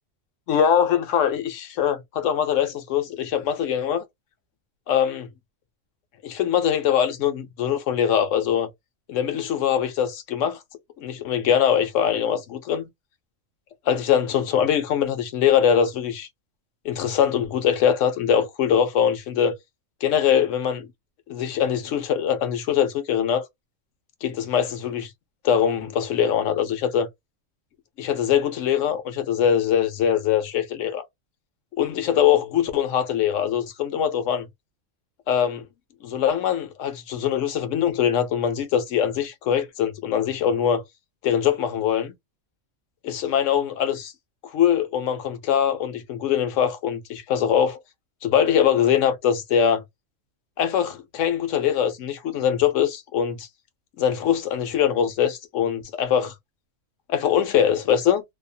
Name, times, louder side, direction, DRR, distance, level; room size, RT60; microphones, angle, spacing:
voice 1, 0.5-4.0 4.9-5.3 6.2-8.7 9.1-10.6 11.0-12.9 13.9-16.3 16.8-19.6 20.0-20.9 21.3-23.5 24.2-25.1 25.4-27.1 28.0-31.0 31.8-34.5 35.3-35.7 36.0-40.8 41.2-42.1 43.0-44.1 44.4-47.8 48.2-49.8 50.6-53.5 54.0-56.3 57.1-58.2, left 9 dB, 70° left, 0.9 m, -22 dB
2.6 x 2.0 x 2.6 m
omnidirectional pair, 1.4 m